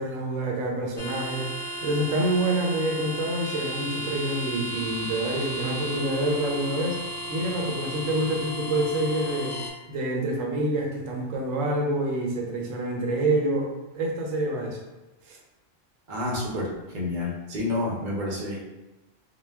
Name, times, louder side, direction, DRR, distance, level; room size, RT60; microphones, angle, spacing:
voice 1, 0.0-1.5 1.8-7.0 7.3-9.6 9.9-13.7 13.9-14.8 15.3-15.4, right 1 dB, 80° right, 0 dB, 0.9 m, -27 dB
sound 1, 1.0-9.7, right 1 dB, 65° left, 0.7 m, -34 dB
voice 2, 16.1-18.6, left 2 dB, 50° right, -3 dB, 0.6 m, -29 dB
2.2 x 2.1 x 3.3 m, 1.1 s
omnidirectional pair, 1.3 m